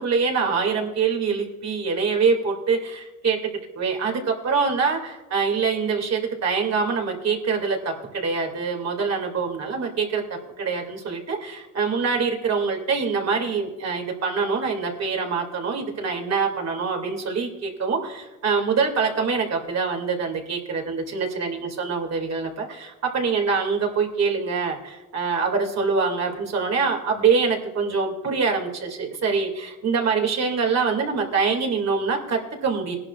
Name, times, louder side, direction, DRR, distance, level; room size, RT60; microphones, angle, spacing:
voice 1, 0.0-10.2 10.6-33.0, right 5 dB, 60° right, 2 dB, 2.4 m, -24 dB
18.5 x 11.0 x 2.4 m, 1.1 s
cardioid pair, 90°, 30 cm